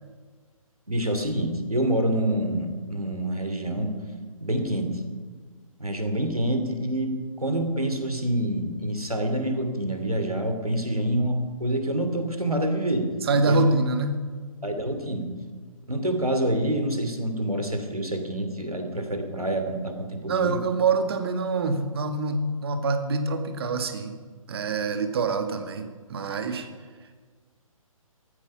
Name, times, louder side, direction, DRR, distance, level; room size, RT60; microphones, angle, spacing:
voice 1, 0.9-4.0 4.4-5.0 5.8-13.1 13.5-13.6 14.6-15.3 15.9-20.6, right 1 dB, 90° right, 6 dB, 2.9 m, -27 dB
voice 2, 13.2-14.2 20.2-24.2 24.5-26.7, right 3 dB, 45° right, 7 dB, 1.9 m, -25 dB
14.5 x 14.0 x 5.7 m, 1.5 s
figure-of-eight pair, 140°, 18 cm